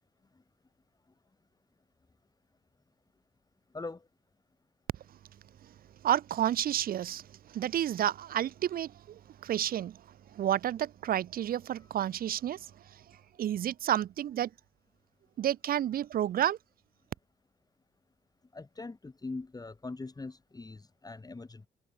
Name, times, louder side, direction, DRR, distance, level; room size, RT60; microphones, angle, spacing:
voice 1, 6.0-10.0 10.3-12.7 13.4-14.5 15.4-16.6, right 11 dB, 80° right, 0.8 m, -30 dB
voice 2, 18.5-21.7, left 3 dB, 25° left, 4.3 m, -42 dB
cardioid pair, 95°, 15 cm